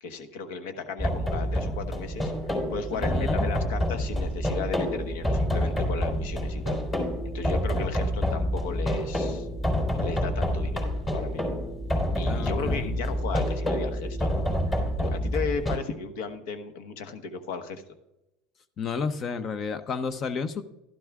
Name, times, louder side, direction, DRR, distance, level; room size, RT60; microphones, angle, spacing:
voice 1, 0.0-6.8 7.2-9.5 10.0-11.5 12.2-17.8, left 5 dB, 75° left, 8 dB, 1.2 m, -35 dB
sound 1, 1.0-15.8, equal, 20° left, 3.5 m, -28 dB
voice 2, 2.9-3.5 12.3-13.0 18.8-20.6, left 5 dB, 40° left, 11 dB, 0.6 m, -32 dB
12.0 x 12.0 x 2.4 m, 0.93 s
supercardioid pair, 105°, 0 cm